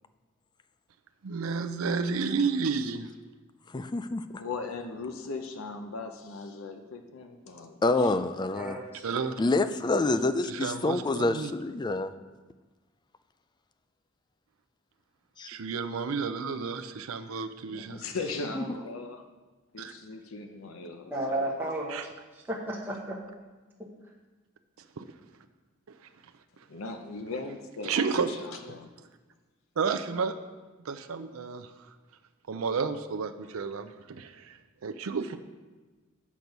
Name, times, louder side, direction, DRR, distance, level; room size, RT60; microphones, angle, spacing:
voice 1, 1.2-3.0 9.0-9.3 10.5-11.5 15.5-18.0 19.8-19.9 21.9-22.1 25.0-25.1 27.8-28.3 29.8-30.3 30.8-31.7 32.5-35.4, right 5 dB, 90° right, 7 dB, 0.5 m, -31 dB
voice 2, 3.7-4.4 7.8-8.8 9.4-12.1 15.4-15.5 18.6-18.7, left 2 dB, 20° left, 11 dB, 0.3 m, -27 dB
voice 3, 4.4-8.1 17.3-19.2 19.7-21.4 26.7-28.9, left 3 dB, 75° left, 5 dB, 0.7 m, -39 dB
voice 4, 8.5-9.3 18.5-18.7 21.1-22.0 22.5-23.2, right 1 dB, 10° right, -4 dB, 1.1 m, -33 dB
8.3 x 6.1 x 5.3 m, 1.3 s
head